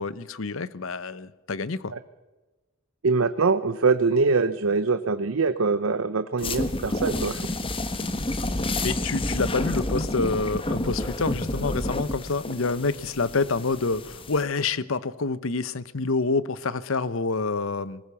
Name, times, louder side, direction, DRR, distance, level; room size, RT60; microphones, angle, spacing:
voice 1, 0.0-1.9 8.8-18.0, left 3 dB, 85° left, 17 dB, 0.9 m, -27 dB
voice 2, 3.0-7.5, right 4 dB, 85° right, 13 dB, 0.7 m, -23 dB
sound 1, 6.4-14.4, left 1 dB, 25° left, 1.3 m, -29 dB
20.5 x 19.0 x 7.1 m, 1.2 s
head